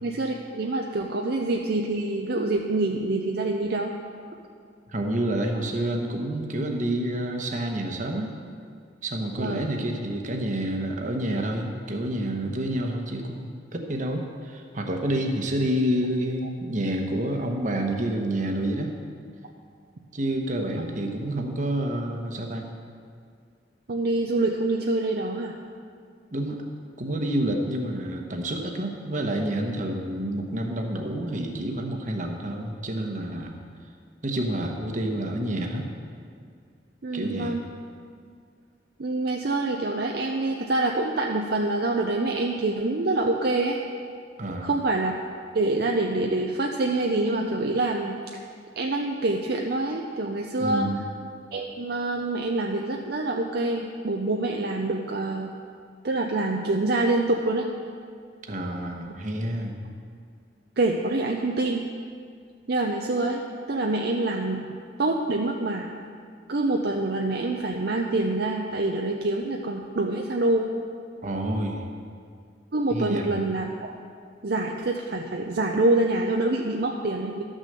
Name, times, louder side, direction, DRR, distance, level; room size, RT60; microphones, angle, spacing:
voice 1, 0.0-3.9 9.4-9.7 23.9-25.6 37.0-37.6 39.0-43.8 44.6-45.1 45.5-48.2 48.8-50.9 51.5-55.5 56.0-57.7 60.8-61.9 62.7-64.6 65.0-65.9 66.5-70.7 72.7-73.9 74.4-77.4, right 2 dB, 60° right, 1 dB, 0.6 m, -26 dB
voice 2, 4.9-8.3 9.0-19.0 20.1-22.7 26.3-26.6 27.0-33.6 34.2-35.9 37.1-37.7 44.4-44.7 50.6-51.0 58.5-59.8 71.2-71.9 72.9-73.3, right 1 dB, 45° right, 2 dB, 1.2 m, -28 dB
12.5 x 6.3 x 6.8 m, 2.2 s
head